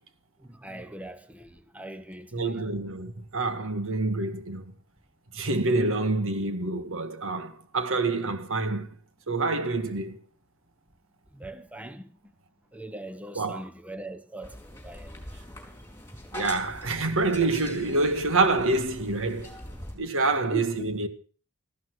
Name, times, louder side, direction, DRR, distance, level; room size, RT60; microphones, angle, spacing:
voice 1, 0.4-2.6 11.3-12.1 12.7-15.1 20.3-21.0, right 1 dB, 5° right, 0.9 m, -41 dB
voice 2, 2.3-4.7 5.3-8.9 9.3-10.2 13.4-13.6 16.3-19.6 20.0-21.1, right 3 dB, 60° right, 1.7 m, -27 dB
sound 1, 14.4-20.0, left 1 dB, 10° left, 4.4 m, -43 dB
14.0 x 13.0 x 6.3 m
head